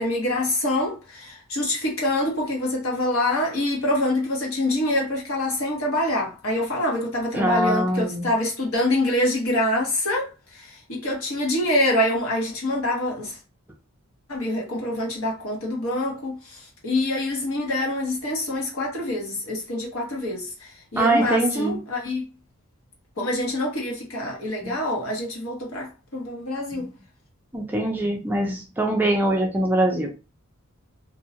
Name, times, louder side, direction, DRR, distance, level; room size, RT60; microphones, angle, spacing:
voice 1, 0.0-13.4 14.3-22.3 23.2-26.9, left 1 dB, 70° left, 1.1 m, -25 dB
voice 2, 7.3-8.3 21.0-21.8 24.6-24.7 26.7-26.9 27.5-30.1, right 1 dB, 10° right, 0.4 m, -23 dB
2.7 x 2.2 x 2.7 m
head